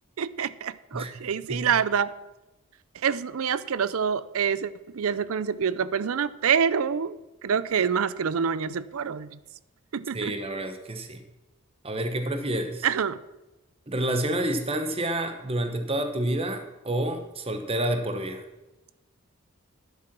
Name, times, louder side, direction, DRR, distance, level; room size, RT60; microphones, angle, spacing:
voice 1, 0.2-2.1 3.0-9.4 9.9-10.3 12.8-13.2, right 7 dB, 75° right, 17 dB, 0.5 m, -26 dB
voice 2, 0.9-1.2 1.5-1.6 10.1-11.2 11.8-12.8 13.9-18.4, right 1 dB, 25° right, 7 dB, 1.0 m, -29 dB
10.5 x 7.9 x 6.0 m, 1.0 s
head